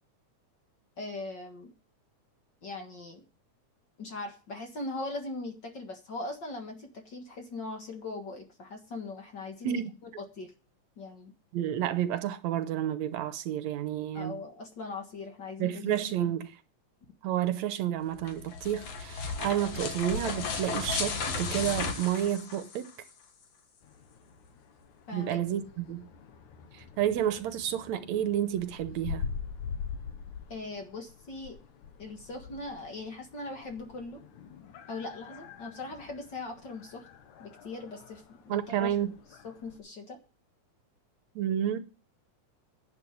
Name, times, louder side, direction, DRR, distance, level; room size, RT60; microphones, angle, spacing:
voice 1, 1.0-1.7 2.6-3.2 4.0-10.5 11.0-11.3 14.1-16.0 25.1-25.4 30.5-31.6 32.0-34.2 34.9-37.1 37.4-38.9 39.4-40.2, left 3 dB, 45° left, 1.9 m, -40 dB
voice 2, 11.5-14.4 15.6-16.5 17.2-22.9 25.1-26.1 26.7-29.2 38.5-39.2 41.4-41.8, right 11 dB, 75° right, 2.0 m, -30 dB
sound 1, 18.1-23.1, left 5 dB, 60° left, 2.6 m, -34 dB
sound 2, 23.8-39.8, left 6 dB, 80° left, 2.8 m, -44 dB
11.0 x 7.8 x 7.7 m
omnidirectional pair, 3.4 m